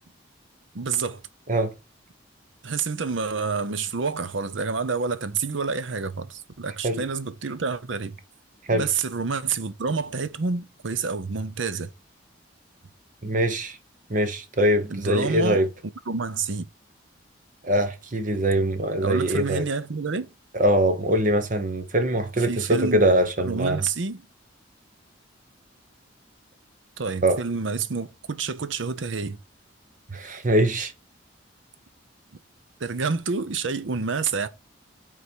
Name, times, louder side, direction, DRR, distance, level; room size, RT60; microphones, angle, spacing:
voice 1, 0.7-1.2 2.6-8.2 8.7-11.9 14.9-15.6 16.1-16.7 19.0-20.3 22.5-23.0 23.4-24.2 27.0-29.4 32.8-34.5, right 4 dB, 70° right, 0.7 m, -28 dB
voice 2, 13.2-13.8 14.1-15.7 17.6-19.7 20.5-23.8 27.2-27.4 30.1-30.9, right 1 dB, 40° right, 1.0 m, -22 dB
8.1 x 3.8 x 4.5 m
head